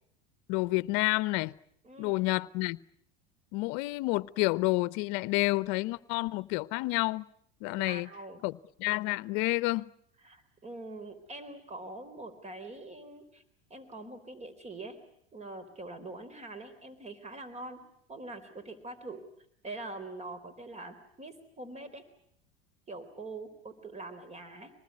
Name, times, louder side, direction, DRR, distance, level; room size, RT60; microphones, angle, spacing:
voice 1, 0.5-1.6 2.0-2.8 3.5-7.3 7.6-8.1 8.4-8.5 8.8-9.9, left 22 dB, 60° left, 1.0 m, -29 dB
voice 2, 1.8-2.2 7.7-8.4 10.2-13.4 13.7-15.0 15.3-17.8 18.1-19.2 19.6-22.0 22.9-24.7, right 2 dB, 20° right, 4.0 m, -44 dB
26.0 x 20.0 x 9.7 m
hypercardioid pair, 100°, 33 cm